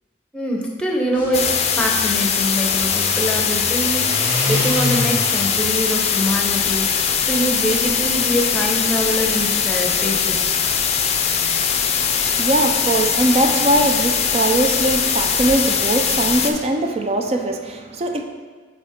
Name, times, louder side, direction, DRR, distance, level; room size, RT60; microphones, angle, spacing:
voice 1, 0.3-10.5, equal, 5° left, 0 dB, 0.8 m, -24 dB
sound 1, 1.1-7.4, left 1 dB, 10° right, 1.3 m, -29 dB
sound 2, 1.3-16.5, left 7 dB, 35° left, 0.5 m, -21 dB
sound 3, 6.5-16.6, right 1 dB, 70° right, 1.1 m, -39 dB
voice 2, 12.0-18.2, right 2 dB, 35° right, 4 dB, 0.4 m, -21 dB
9.0 x 3.4 x 3.6 m, 1.5 s
head